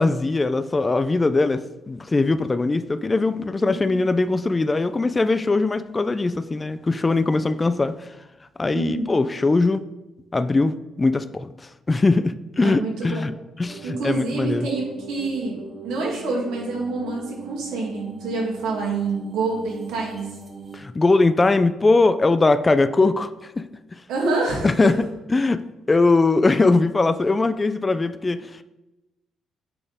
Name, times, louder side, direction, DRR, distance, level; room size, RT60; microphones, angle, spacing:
voice 1, 0.0-8.1 8.6-9.8 10.3-11.5 11.9-13.3 13.6-14.7 20.7-23.6 23.9-24.0 24.6-25.0 25.3-28.6, left 3 dB, 25° left, 12 dB, 0.3 m, -21 dB
voice 2, 8.7-9.2 12.6-13.2 13.8-14.8 15.1-20.4 24.1-24.7, right 3 dB, 85° right, -3 dB, 2.3 m, -27 dB
sound 1, 13.6-20.8, right 4 dB, 35° right, 1.3 m, -39 dB
8.6 x 4.2 x 3.5 m, 1.0 s
cardioid pair, 90°, 0 cm